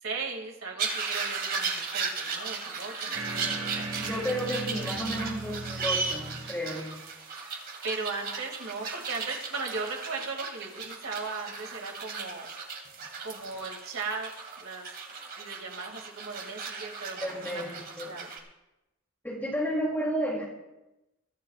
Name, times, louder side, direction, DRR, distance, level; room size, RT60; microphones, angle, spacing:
voice 1, 0.0-3.9 7.8-12.5 13.2-14.3 14.6-14.9 15.4-17.8 18.0-18.3, right 4 dB, 70° right, 1 dB, 2.5 m, -37 dB
sound 1, 0.8-18.4, right 5 dB, 45° right, 2.5 m, -36 dB
sound 2, 3.1-7.4, right 2 dB, 85° right, 2.0 m, -38 dB
voice 2, 4.0-6.9 17.2-17.7 18.0-18.1 19.2-20.4, equal, 10° left, -3 dB, 3.0 m, -32 dB
22.5 x 13.5 x 2.5 m, 0.97 s
head